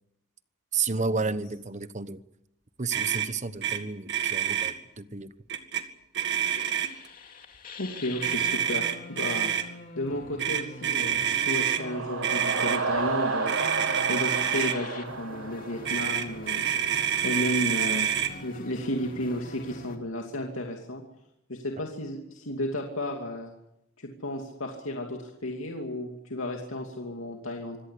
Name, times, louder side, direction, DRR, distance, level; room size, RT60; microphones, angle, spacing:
voice 1, 0.7-2.2 2.8-5.3, right 4 dB, 35° right, 1.0 m, -31 dB
Motor vehicle (road), 2.9-3.3 3.6-3.8 4.1-4.7 5.5-5.8 6.1-7.1 8.2-9.6 10.4-11.8 12.2-12.8 13.5-14.8 15.8-18.3, right 9 dB, 60° right, 2.0 m, -27 dB
sound 1, 6.5-20.0, left 2 dB, 45° left, 2.6 m, -44 dB
voice 2, 7.8-9.5 9.9-13.6 14.1-16.7 17.2-18.1 18.4-21.0 21.5-23.5 24.0-27.8, left 1 dB, 85° left, 2.7 m, -33 dB
sound 2, 11.4-16.3, right 4 dB, 75° right, 1.8 m, -31 dB
25.5 x 17.0 x 8.4 m
head